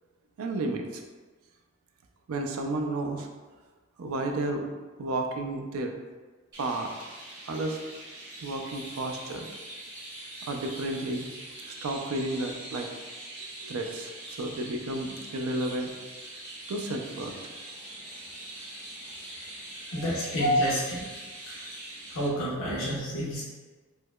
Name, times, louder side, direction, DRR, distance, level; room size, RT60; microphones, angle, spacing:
voice 1, 0.4-1.0 2.3-3.3 4.0-4.7 5.0-5.9 6.6-6.9 7.5-7.8 8.4-9.5 10.4-11.3 11.7-12.9 13.4-15.9 16.7-17.3 17.6-17.7 18.1-18.2 20.0-20.1 21.6-21.7, right 2 dB, 85° right, 3 dB, 0.4 m, -32 dB
Chirp tweet, 6.5-22.3, right 1 dB, 50° right, 0.8 m, -43 dB
voice 2, 19.9-21.1 21.5-21.7 22.1-23.4, equal, 80° left, -8 dB, 0.8 m, -28 dB
4.6 x 2.1 x 2.3 m, 1.3 s
head